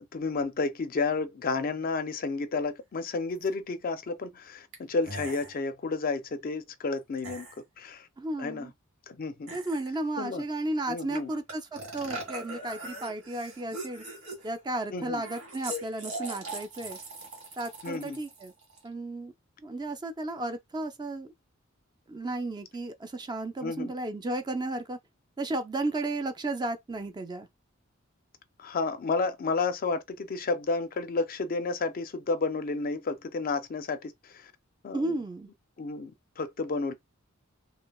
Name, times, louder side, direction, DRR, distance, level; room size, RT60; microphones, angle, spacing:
voice 1, 0.1-7.5 7.8-8.1 8.4-8.7 9.1-9.6 10.2-10.4 10.9-11.3 14.9-15.2 17.8-18.2 23.6-23.9 28.6-34.5 34.8-35.1 35.8-36.9, left 3 dB, 45° left, 0.4 m, -31 dB
sound 1, 3.4-3.5 4.7-4.8 5.0-5.5 7.2-7.6 9.5-10.0 11.2-11.3 11.5-14.6 15.1-18.9, right 1 dB, 85° right, 1.9 m, -40 dB
voice 2, 8.2-8.7 9.5-14.0 14.4-17.0 17.6-18.5 18.8-19.3 19.6-21.3 22.1-25.0 25.4-27.5 34.9-35.5, right 2 dB, 20° right, 0.4 m, -33 dB
3.2 x 2.9 x 2.3 m
head